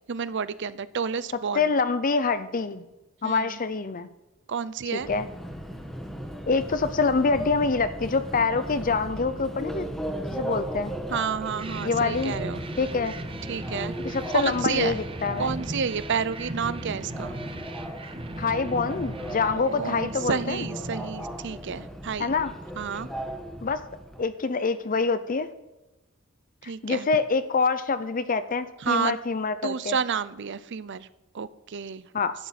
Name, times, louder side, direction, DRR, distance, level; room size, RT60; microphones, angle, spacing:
voice 1, 0.1-1.6 3.2-3.6 4.5-5.1 11.1-12.6 13.5-15.0 15.4-17.4 19.5-22.3 22.8-23.1 26.6-27.1 28.8-29.2 29.6-31.1 31.3-32.1, right 6 dB, 60° right, 17 dB, 0.6 m, -30 dB
voice 2, 1.5-2.8 3.2-4.1 4.9-5.3 6.5-9.9 10.3-10.9 11.8-12.3 12.8-13.1 14.0-15.5 18.4-20.6 22.2-22.5 23.6-23.8 24.2-25.5 26.6-30.0 32.1-32.3, left 4 dB, 40° left, 12 dB, 0.7 m, -26 dB
Subway metro underground, 5.0-24.2, right 1 dB, ahead, 1.4 m, -37 dB
sound 1, 11.6-22.1, right 1 dB, 25° right, 0.8 m, -37 dB
11.5 x 9.4 x 4.2 m, 1.0 s
head